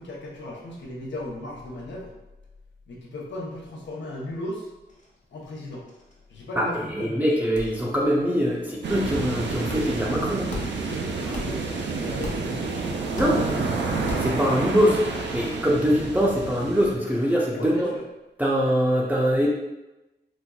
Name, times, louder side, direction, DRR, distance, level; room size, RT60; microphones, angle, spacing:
voice 1, 0.0-2.1 2.9-4.7 5.3-5.8 6.3-7.3 11.2-12.8 13.3-13.8 17.5-18.0, left 1 dB, 80° left, -2 dB, 0.7 m, -36 dB
sound 1, 4.9-5.2 5.5-5.6 5.8-6.4 6.7-6.9 7.5-8.1 8.4-9.1 9.7-10.1 10.5-11.0 11.3-11.8 12.2-12.7 13.2-13.6 14.1-14.5, left 2 dB, 40° left, 0.7 m, -39 dB
voice 2, 6.6-10.5 13.1-13.4 14.2-15.0 15.3-17.9 18.4-19.5, equal, 10° right, -5 dB, 0.5 m, -23 dB
sound 2, 8.8-16.9, right 4 dB, 75° right, 0.5 m, -29 dB
4.2 x 2.4 x 2.3 m, 1.0 s
wide cardioid pair, 80°, 18 cm